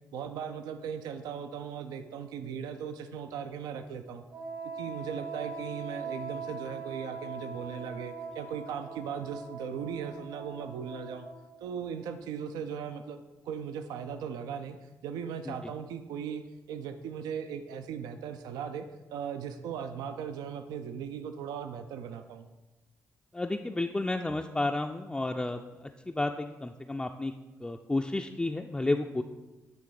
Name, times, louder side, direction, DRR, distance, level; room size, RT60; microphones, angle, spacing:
voice 1, 0.1-4.2 4.8-11.3 11.6-14.8 15.0-16.4 16.7-22.5, right 7 dB, 85° right, 9 dB, 0.4 m, -38 dB
Wind instrument woodwind instrument, 4.3-11.6, right 4 dB, 60° right, 1.1 m, -41 dB
voice 2, 23.3-25.6 26.1-27.3 27.6-29.2, left 2 dB, 10° left, 3 dB, 0.3 m, -31 dB
9.0 x 3.2 x 4.8 m, 1.1 s
supercardioid pair, 60°, 7 cm